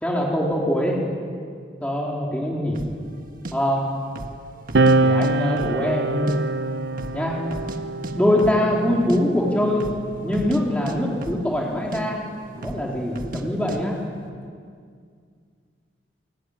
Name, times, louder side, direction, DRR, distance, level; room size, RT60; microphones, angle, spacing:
voice 1, 0.0-1.0 1.8-2.8 3.5-3.8 5.0-6.4 7.1-7.3 8.1-9.8 10.2-12.2 12.6-14.0, left 1 dB, 5° left, -3 dB, 3.8 m, -23 dB
sound 1, 2.7-3.0 3.4-3.5 4.1-4.4 4.7-5.3 5.6-6.4 6.6-6.7 7.0-7.8 8.0-8.1 8.4-8.6 8.9-9.2 9.7-10.0 10.3-10.6 10.9-11.7 11.9-12.0 12.6-12.9 13.2-13.4 13.7-13.8, right 1 dB, 45° right, 1.7 m, -34 dB
sound 2, 4.7-11.7 12.6-14.5, right 2 dB, 65° right, 0.7 m, -26 dB
29.5 x 18.5 x 9.8 m, 2.2 s
head